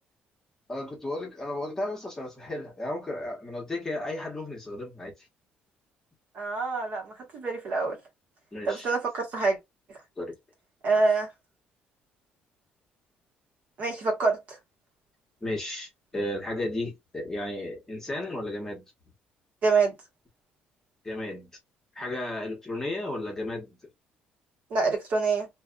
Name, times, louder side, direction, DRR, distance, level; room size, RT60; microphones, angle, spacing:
voice 1, 0.7-5.1 8.5-8.9 10.2-10.3 15.4-18.8 21.0-21.5 21.9-23.7, left 1 dB, 15° left, 1.1 m, -34 dB
voice 2, 6.3-8.0 8.6-9.6 10.8-11.3 13.8-14.6 19.6-20.0 24.7-25.5, right 4 dB, 55° right, 1.3 m, -26 dB
2.5 x 2.5 x 2.3 m
cardioid pair, 135°, 3 cm